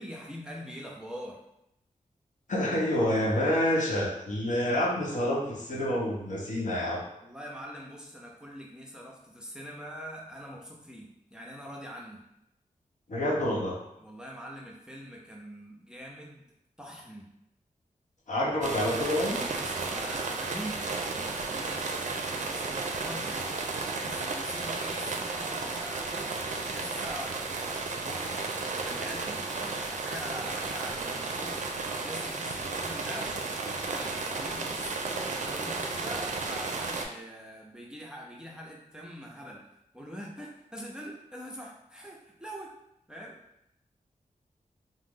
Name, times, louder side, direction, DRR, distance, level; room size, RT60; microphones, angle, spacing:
voice 1, 0.0-1.4 7.2-12.2 14.0-16.4 16.8-17.3 19.5-22.0 22.3-23.4 24.0-26.3 26.7-27.7 28.0-35.0 35.3-39.6 39.9-42.8 43.1-43.4, equal, 5° right, -3 dB, 0.5 m, -43 dB
voice 2, 2.5-7.0 13.1-13.8 18.3-19.4, left 1 dB, 65° left, -4 dB, 0.8 m, -28 dB
sound 1, 18.6-37.0, right 3 dB, 65° right, 0.4 m, -33 dB
3.0 x 2.0 x 3.6 m, 0.80 s
wide cardioid pair, 95°, 14 cm